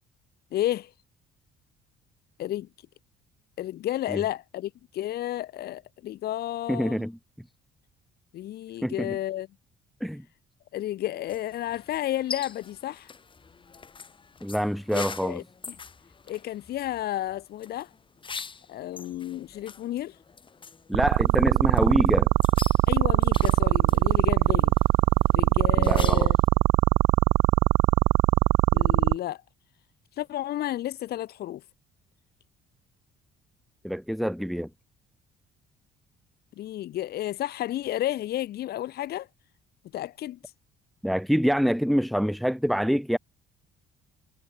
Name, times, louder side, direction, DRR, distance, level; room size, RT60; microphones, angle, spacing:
voice 1, 0.5-0.9 2.4-2.7 3.6-7.1 8.3-9.5 10.7-13.1 14.9-15.8 16.3-17.9 18.7-20.2 22.9-24.7 25.3-26.4 28.7-29.4 30.2-31.6 36.6-39.3 39.9-40.4, left 13 dB, 70° left, 5.2 m, -32 dB
voice 2, 6.7-7.2 8.8-9.2 10.0-10.2 14.4-15.4 20.9-22.3 25.8-26.3 33.8-34.7 41.0-43.2, equal, ahead, 2.2 m, -26 dB
sound 1, 11.3-26.5, left 5 dB, 30° left, 5.2 m, -44 dB
sound 2, 20.9-29.1, right 18 dB, 70° right, 0.4 m, -20 dB
cardioid pair, 110°, 17 cm